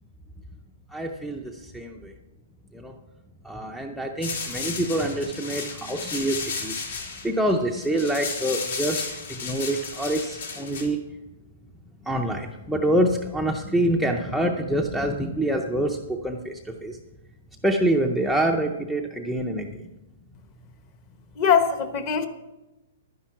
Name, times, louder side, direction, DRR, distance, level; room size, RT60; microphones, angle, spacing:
voice 1, 0.9-2.1 2.7-2.9 3.4-9.0 9.3-11.0 12.0-17.0 17.6-19.8, right 1 dB, ahead, 3 dB, 0.5 m, -26 dB
sound 1, 4.2-10.8, left 5 dB, 75° left, 3.9 m, -33 dB
voice 2, 21.4-22.3, left 7 dB, 30° left, 9 dB, 1.1 m, -21 dB
11.5 x 10.0 x 5.9 m, 1.0 s
hypercardioid pair, 170°, 0 cm